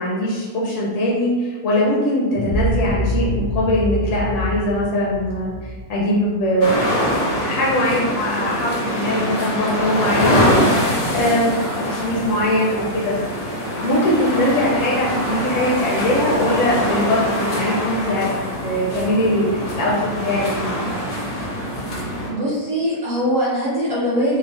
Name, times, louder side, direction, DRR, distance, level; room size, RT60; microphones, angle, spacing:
voice 1, 0.0-13.2 13.7-18.3 18.6-20.9, left 1 dB, 65° left, -5 dB, 0.8 m, -21 dB
sound 1, 2.3-7.1, equal, 75° right, 0.5 m, -25 dB
sound 2, 6.6-22.3, equal, 85° left, 1.3 m, -23 dB
voice 2, 22.3-24.4, equal, 60° right, -9 dB, 1.2 m, -21 dB
3.3 x 2.0 x 2.5 m, 1.4 s
omnidirectional pair, 1.6 m